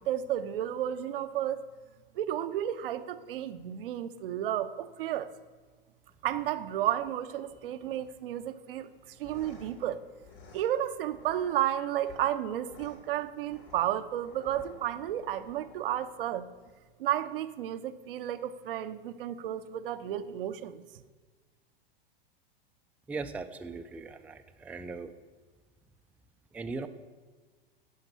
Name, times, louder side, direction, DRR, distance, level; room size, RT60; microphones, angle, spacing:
voice 1, 0.1-1.6 2.1-5.3 6.2-8.9 9.2-10.0 10.5-16.5 17.0-20.8, right 11 dB, 70° right, 0.7 m, -32 dB
sound 1, 8.9-16.9, left 4 dB, 50° left, 3.2 m, -55 dB
voice 2, 23.1-25.1 26.5-26.9, right 4 dB, 5° right, 0.4 m, -39 dB
10.5 x 5.4 x 6.7 m
hypercardioid pair, 100°, 29 cm